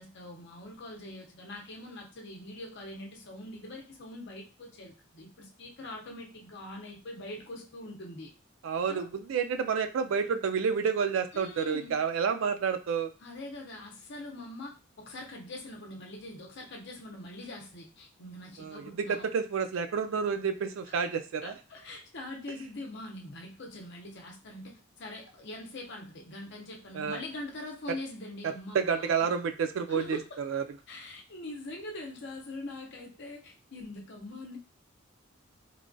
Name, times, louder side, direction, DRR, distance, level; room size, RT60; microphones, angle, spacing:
voice 1, 0.0-8.3 8.9-9.1 11.3-12.0 13.2-19.3 20.9-21.0 21.4-29.3 29.9-30.4 30.9-34.6, left 1 dB, 60° left, 1 dB, 0.7 m, -43 dB
voice 2, 8.6-13.1 18.6-21.5 26.9-27.2 28.4-30.6, right 6 dB, 75° right, 7 dB, 0.3 m, -30 dB
3.1 x 2.2 x 2.6 m, 0.33 s
head